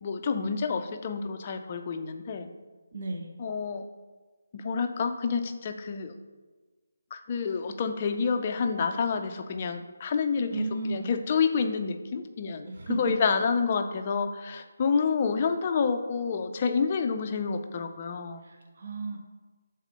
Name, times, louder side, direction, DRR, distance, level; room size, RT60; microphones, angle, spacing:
voice 1, 0.0-2.5 3.4-3.8 4.5-6.1 7.1-18.4, left 5 dB, 30° left, 7 dB, 0.5 m, -28 dB
voice 2, 2.9-3.3 10.5-11.1 12.7-13.1 18.4-19.2, right 3 dB, 50° right, 2 dB, 0.8 m, -33 dB
6.5 x 4.1 x 5.1 m, 1.3 s
figure-of-eight pair, 170°, 0 cm